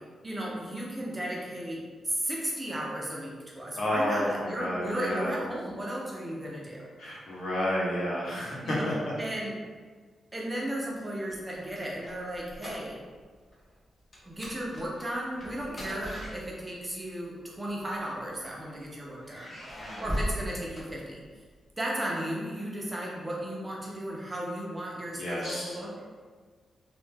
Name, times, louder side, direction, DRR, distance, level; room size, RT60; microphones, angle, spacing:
voice 1, 0.2-6.9 8.6-9.6 10.3-13.0 14.3-19.6 20.0-21.2 21.8-26.1, right 1 dB, 15° right, -4 dB, 0.4 m, -35 dB
voice 2, 3.8-5.4 7.0-8.9 19.8-20.0 25.2-25.6, left 1 dB, 55° left, -6 dB, 0.7 m, -30 dB
sound 1, 11.3-13.2 13.5-13.7 14.1-16.9 17.8-18.6 19.2-21.5, equal, 25° left, 0.6 m, -38 dB
2.1 x 2.1 x 3.1 m, 1.5 s
wide cardioid pair, 155°, 0 cm